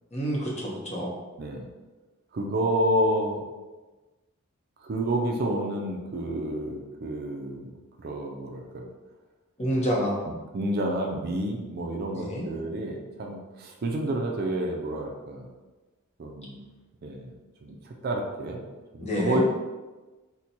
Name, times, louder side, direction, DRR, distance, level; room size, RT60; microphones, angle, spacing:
voice 1, 0.1-1.1 9.6-10.1 12.1-12.4 19.0-19.4, equal, 30° left, -4 dB, 0.8 m, -28 dB
voice 2, 2.3-3.4 4.8-7.7 8.0-8.9 9.7-9.9 10.5-15.5 16.2-16.6 17.0-17.3 17.6-18.6 18.9-19.4, right 1 dB, 45° right, 1 dB, 0.4 m, -29 dB
4.2 x 2.2 x 2.7 m, 1.2 s
head